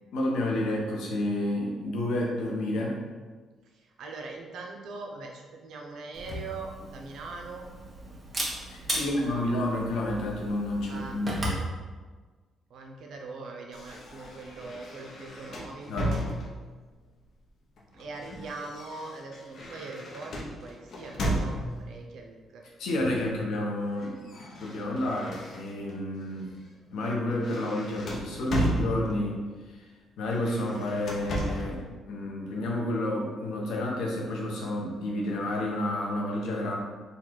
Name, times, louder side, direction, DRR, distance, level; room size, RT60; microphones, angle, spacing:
voice 1, 0.1-3.0 8.7-11.5 15.9-16.1 22.8-26.5 26.9-29.4 29.7-29.8 30.2-36.8, left 1 dB, 85° left, -2 dB, 1.0 m, -30 dB
voice 2, 3.6-7.7 8.8-9.4 10.9-11.2 12.7-16.2 17.9-20.3 20.6-22.6, right 3 dB, 75° right, 1 dB, 0.7 m, -41 dB
Camera, 6.1-11.7, right 1 dB, 20° right, 1.2 m, -36 dB
sound 1, 13.7-16.8 17.8-22.0 23.0-23.4 23.7-26.0 26.4-26.6 27.0-29.4 30.3-31.8, equal, 60° left, 0.8 m, -34 dB
3.9 x 2.4 x 4.6 m, 1.4 s
cardioid pair, 90°, 0 cm